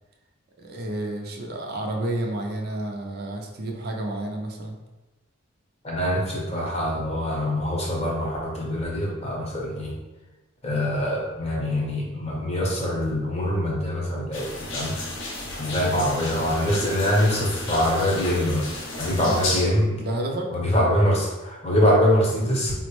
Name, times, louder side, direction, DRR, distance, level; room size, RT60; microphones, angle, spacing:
voice 1, 0.6-4.8 19.2-19.3 20.0-20.5, right 1 dB, 45° right, 1 dB, 0.4 m, -30 dB
voice 2, 5.8-9.9 10.6-15.0 15.6-18.7 19.0-20.0 20.5-22.7, left 1 dB, 30° left, -3 dB, 0.7 m, -24 dB
sound 1, 14.3-19.6, left 2 dB, 60° left, 0.6 m, -33 dB
4.2 x 2.1 x 2.9 m, 1.1 s
head